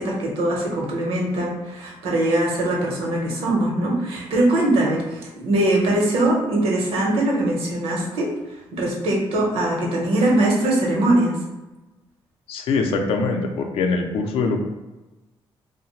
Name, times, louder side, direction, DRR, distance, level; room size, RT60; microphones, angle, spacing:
voice 1, 0.0-11.4, right 1 dB, 85° right, -1 dB, 0.8 m, -22 dB
voice 2, 12.5-14.7, left 4 dB, 75° left, 4 dB, 0.4 m, -23 dB
2.7 x 2.1 x 3.0 m, 1.1 s
cardioid pair, 140°, 10 cm